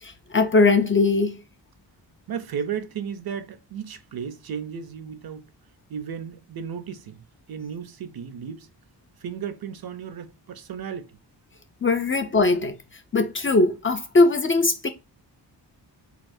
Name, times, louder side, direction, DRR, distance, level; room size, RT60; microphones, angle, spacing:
voice 1, 0.0-1.4 11.8-12.8 13.1-14.9, left 3 dB, 30° left, 0.4 m, -20 dB
voice 2, 2.3-5.4 5.9-7.2 7.5-8.7 9.2-11.2, right 7 dB, 55° right, 0.6 m, -34 dB
4.1 x 2.2 x 2.6 m
wide cardioid pair, 95°, 43 cm